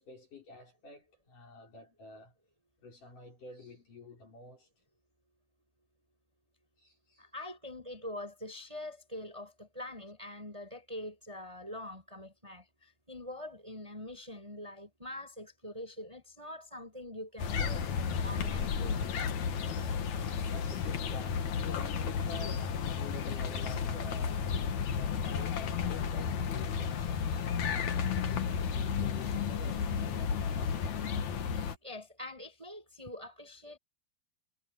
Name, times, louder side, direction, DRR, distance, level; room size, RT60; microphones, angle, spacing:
voice 1, 0.0-2.4 2.8-4.7 6.8-7.3 20.4-24.5 25.0-30.9, left 2 dB, 40° left, 7.4 m, -49 dB
voice 2, 7.2-12.6 13.1-17.8 18.2-19.1 31.8-33.8, left 1 dB, 5° right, 6.4 m, -44 dB
sound 1, 17.4-31.8, left 6 dB, 70° left, 1.7 m, -33 dB
omnidirectional pair, 5.9 m